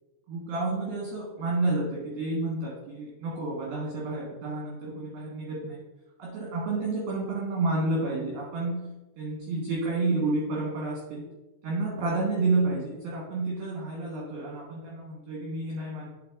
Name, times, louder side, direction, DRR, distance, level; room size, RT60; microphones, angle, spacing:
voice 1, 0.3-5.8 6.2-8.8 9.2-11.2 11.6-16.1, right 2 dB, 65° right, -5 dB, 2.6 m, -30 dB
9.8 x 6.8 x 2.5 m, 1.0 s
omnidirectional pair, 6.0 m